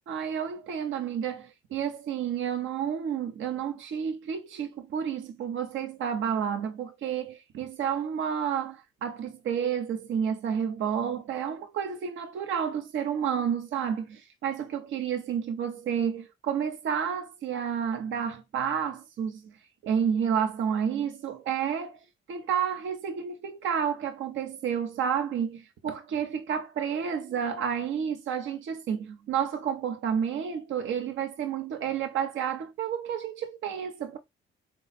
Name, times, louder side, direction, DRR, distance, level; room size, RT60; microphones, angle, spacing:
voice 1, 0.1-19.5 19.8-22.0 22.3-34.2, right 8 dB, 75° right, 0.8 m, -30 dB
4.0 x 2.4 x 4.1 m
cardioid pair, 90°, 20 cm